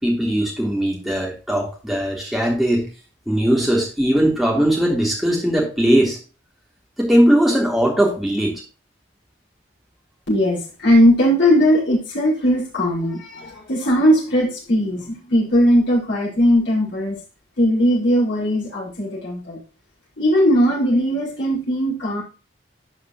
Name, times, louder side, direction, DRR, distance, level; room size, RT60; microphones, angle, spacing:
voice 1, 0.0-2.9 3.3-6.2 7.0-8.6, equal, ahead, -3 dB, 3.5 m, -19 dB
voice 2, 10.3-17.2 17.6-19.6 20.2-22.2, equal, 65° left, -6 dB, 5.8 m, -18 dB
12.5 x 5.8 x 3.0 m, 0.34 s
head